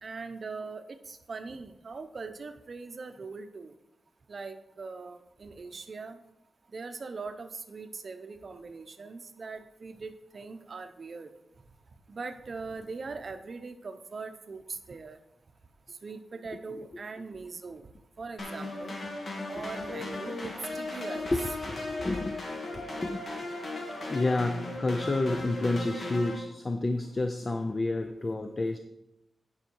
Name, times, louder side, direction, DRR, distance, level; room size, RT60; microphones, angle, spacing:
voice 1, 0.0-3.7 4.3-6.2 6.7-11.3 12.1-15.2 16.0-17.9 18.2-19.0 19.5-21.3, right 4 dB, 45° right, 8 dB, 0.7 m, -41 dB
sound 1, 18.4-26.4, left 2 dB, 50° left, 1.5 m, -37 dB
voice 2, 21.1-22.4 22.7-23.3 24.1-28.8, left 2 dB, 25° left, 7 dB, 0.5 m, -30 dB
9.9 x 5.6 x 4.6 m, 0.85 s
wide cardioid pair, 150°, 0 cm